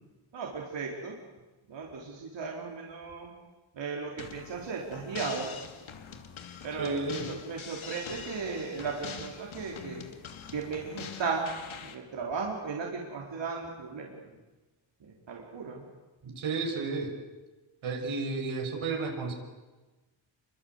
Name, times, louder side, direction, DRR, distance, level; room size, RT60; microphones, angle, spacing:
voice 1, 0.3-1.1 1.7-3.3 3.7-5.5 6.6-10.1 10.5-11.5 11.8-14.3 15.1-15.8, right 5 dB, 65° right, -1 dB, 4.2 m, -36 dB
sound 1, 4.2-12.0, left 7 dB, 90° left, 2.8 m, -44 dB
voice 2, 6.8-7.3 16.2-17.1 17.8-19.3, right 3 dB, 85° right, 2 dB, 6.2 m, -32 dB
29.5 x 24.0 x 8.2 m, 1.2 s
wide cardioid pair, 170°, 47 cm